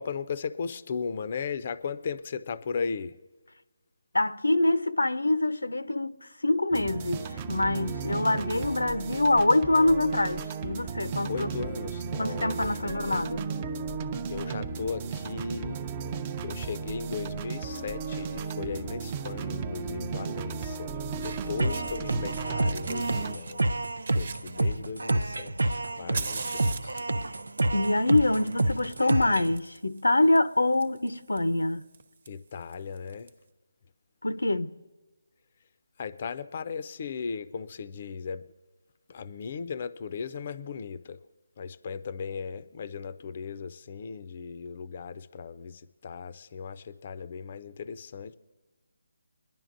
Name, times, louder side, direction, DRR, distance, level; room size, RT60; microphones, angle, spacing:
voice 1, 0.0-3.2 11.3-13.2 14.3-15.8 16.4-23.8 24.1-27.0 32.3-33.3 36.0-38.4 39.1-41.2 41.6-48.4, left 5 dB, 40° left, 0.5 m, -37 dB
voice 2, 4.1-11.5 12.2-13.4 27.7-31.9 34.2-34.8, left 2 dB, 90° left, 0.6 m, -25 dB
sound 1, 6.7-23.3, right 5 dB, 25° right, 0.5 m, -35 dB
Fire, 18.1-18.3 19.8-19.9 20.8-20.9 21.1-22.4 22.6-25.1 25.6-33.3, right 4 dB, 55° right, 1.1 m, -43 dB
sound 2, 21.6-29.6, right 2 dB, 80° right, 0.5 m, -29 dB
23.0 x 10.5 x 2.6 m
figure-of-eight pair, 160°, 0 cm